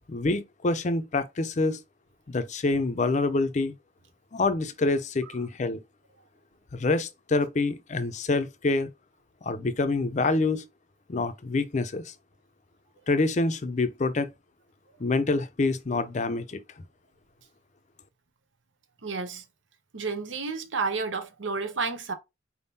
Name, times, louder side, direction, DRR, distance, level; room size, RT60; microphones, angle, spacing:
voice 1, 0.1-1.8 2.3-3.7 4.3-5.8 6.7-8.9 9.4-10.6 11.1-12.1 13.1-14.3 15.0-16.6, left 3 dB, 40° left, 0.5 m, -26 dB
voice 2, 19.0-19.4 19.9-22.1, right 4 dB, 85° right, 0.8 m, -31 dB
4.4 x 3.6 x 2.7 m
head